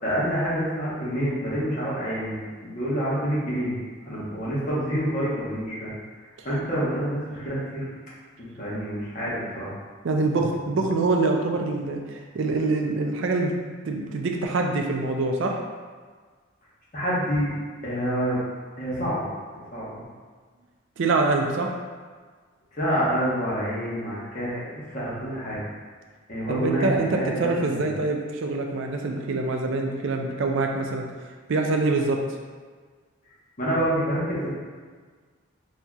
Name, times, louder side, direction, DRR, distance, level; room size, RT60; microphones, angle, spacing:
voice 1, 0.0-3.8 4.0-5.9 6.4-7.9 8.6-9.7 16.9-17.5 17.8-18.4 18.8-19.3 19.5-20.0 22.7-25.6 26.3-27.9 33.6-34.5, equal, 35° left, -8 dB, 1.1 m, -27 dB
voice 2, 10.0-13.5 13.8-15.6 21.0-21.7 26.5-31.0 31.5-32.2, right 3 dB, 60° right, 2 dB, 0.4 m, -25 dB
4.1 x 2.8 x 2.3 m, 1.5 s
head